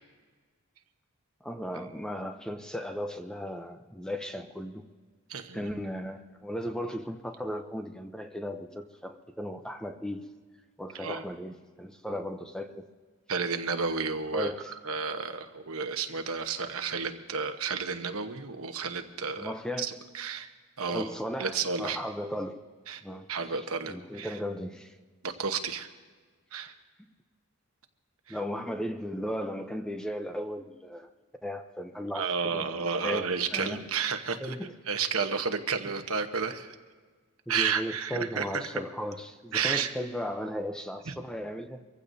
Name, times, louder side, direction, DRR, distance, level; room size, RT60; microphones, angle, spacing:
voice 1, 1.4-4.8 5.5-10.3 10.8-12.9 14.3-14.7 19.4-20.1 20.9-22.6 23.0-25.0 28.3-31.1 31.4-33.8 34.4-34.7 35.8-35.9 37.5-41.8, equal, 5° left, 6 dB, 0.6 m, -36 dB
voice 2, 5.3-5.7 10.9-11.2 13.3-14.5 14.8-20.5 20.8-21.0 21.4-22.0 22.9-23.0 23.3-24.4 25.2-25.9 26.5-26.7 28.3-28.4 32.1-34.6 34.9-36.7 37.5-38.6 39.5-39.9 41.1-41.2, right 5 dB, 75° right, 7 dB, 1.1 m, -31 dB
24.5 x 15.5 x 2.7 m, 1.5 s
head